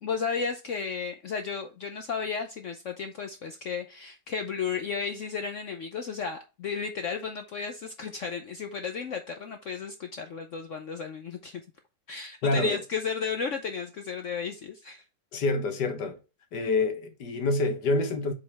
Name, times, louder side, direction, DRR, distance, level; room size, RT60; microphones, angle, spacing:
voice 1, 0.0-11.6 12.1-15.0, left 5 dB, 60° left, 0.9 m, -33 dB
voice 2, 12.4-12.8 15.3-16.2 16.5-18.3, left 3 dB, 85° left, 1.8 m, -27 dB
7.1 x 5.0 x 3.4 m
omnidirectional pair, 1.7 m